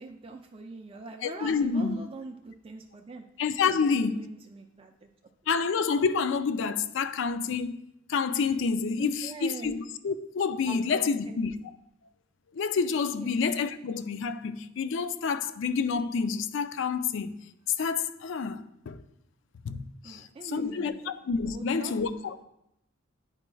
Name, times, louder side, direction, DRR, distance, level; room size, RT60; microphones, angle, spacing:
voice 1, 0.0-3.2 3.7-5.1 9.0-9.7 10.6-11.1 13.2-13.4 20.0-21.0 21.5-22.3, right 3 dB, 30° right, 0.4 m, -42 dB
voice 2, 1.2-2.0 3.4-4.2 5.5-7.8 8.1-11.5 12.5-17.4 17.8-19.0 19.6-22.4, left 5 dB, 65° left, 0.4 m, -28 dB
9.6 x 4.4 x 2.3 m
head